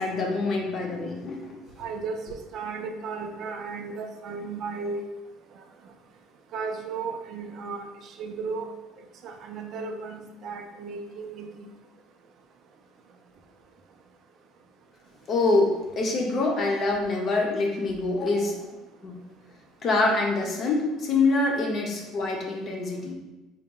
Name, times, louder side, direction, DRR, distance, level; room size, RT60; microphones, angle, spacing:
voice 1, 0.0-1.4 15.3-18.7 19.0-19.2 19.8-23.1, left 3 dB, 40° left, 1 dB, 0.7 m, -25 dB
voice 2, 1.8-5.0 6.5-8.7 9.2-11.7, right 4 dB, 50° right, 4 dB, 0.4 m, -35 dB
4.0 x 2.1 x 3.7 m, 1.1 s
cardioid pair, 120°, 0 cm